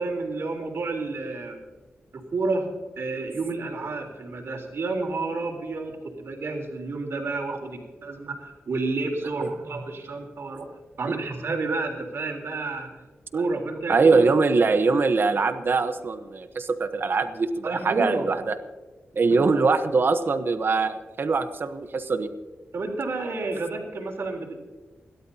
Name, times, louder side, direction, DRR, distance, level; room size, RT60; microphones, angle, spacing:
voice 1, 0.0-1.6 2.1-2.7 3.0-10.7 11.0-12.9 13.3-14.2 17.6-18.3 19.3-19.7 22.7-24.6, right 3 dB, 75° right, 0 dB, 3.8 m, -30 dB
voice 2, 13.9-18.5 19.1-22.3, right 4 dB, 55° right, 9 dB, 1.1 m, -22 dB
29.5 x 12.5 x 2.9 m, 1.3 s
wide cardioid pair, 120°, 4 cm